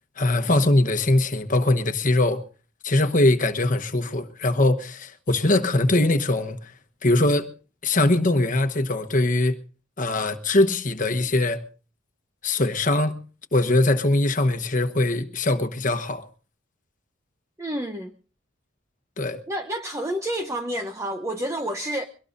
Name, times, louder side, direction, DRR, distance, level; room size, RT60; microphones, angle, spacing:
voice 1, 0.2-2.4 2.8-6.7 7.0-7.5 7.8-9.6 10.0-11.6 12.4-13.2 13.5-16.2 19.2-19.4, left 2 dB, 40° left, 1.1 m, -21 dB
voice 2, 17.6-18.1 19.5-22.1, right 1 dB, 15° right, 0.7 m, -29 dB
23.0 x 18.0 x 2.6 m
head